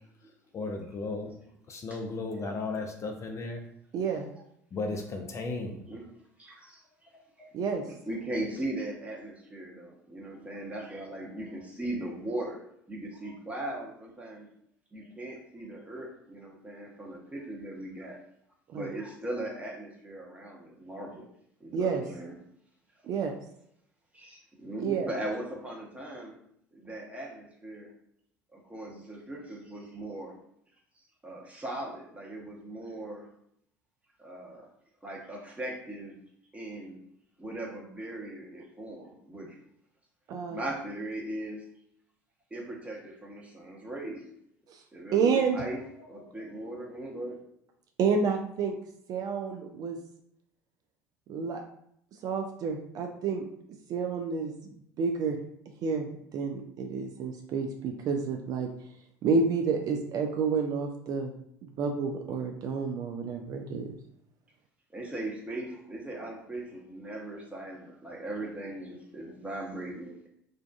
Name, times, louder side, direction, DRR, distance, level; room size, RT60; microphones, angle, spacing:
voice 1, 0.5-1.3 1.7-3.6 4.7-5.8, left 3 dB, 35° left, 3 dB, 0.4 m, -35 dB
voice 2, 3.9-4.3 7.5-7.8 18.7-18.9 21.7-22.0 23.1-23.3 24.8-25.1 40.3-40.6 44.7-44.8 45.1-45.6 48.0-48.8 49.1-50.0 51.3-51.6 52.2-53.5 53.9-54.5 55.0-55.4 55.8-56.1 56.3-58.7 59.2-61.3 61.8-63.9, right 5 dB, 45° right, 3 dB, 0.3 m, -29 dB
voice 3, 5.5-6.0 6.4-7.1 7.4-7.5 7.9-12.6 12.9-14.5 14.9-18.2 18.7-21.3 21.6-22.3 24.1-26.3 26.7-27.9 28.5-30.3 31.2-33.3 34.2-34.7 35.0-36.1 36.5-37.0 37.4-39.6 40.5-41.6 42.5-44.2 44.9-47.4 64.9-70.3, right 1 dB, 15° right, -2 dB, 0.9 m, -39 dB
2.5 x 2.3 x 2.3 m, 0.71 s
hypercardioid pair, 65°, 9 cm